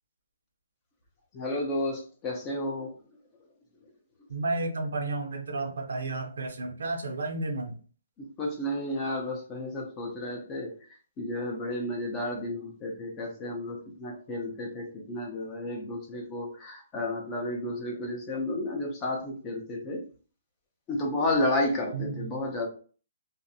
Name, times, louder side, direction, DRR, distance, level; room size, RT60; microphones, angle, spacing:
voice 1, 1.3-3.0 8.2-10.8 11.2-20.0 20.9-22.7, left 1 dB, 20° left, 0 dB, 0.6 m, -32 dB
voice 2, 4.3-7.7 21.9-22.3, right 3 dB, 80° right, 3 dB, 0.7 m, -32 dB
2.5 x 2.1 x 2.6 m, 0.39 s
hypercardioid pair, 165°, 0 cm